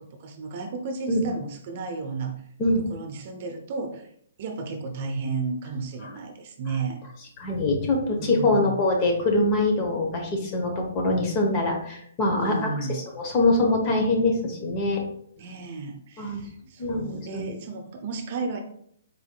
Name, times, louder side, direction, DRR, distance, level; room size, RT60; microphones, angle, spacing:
voice 1, 0.2-2.4 2.9-4.1 4.4-7.0 8.2-8.7 12.4-13.0 15.4-18.6, right 4 dB, 45° right, 4 dB, 0.7 m, -33 dB
voice 2, 7.4-15.0 16.2-16.4 16.8-17.4, left 2 dB, 30° left, 1 dB, 0.9 m, -24 dB
4.1 x 3.5 x 2.2 m, 0.67 s
hypercardioid pair, 145°, 0 cm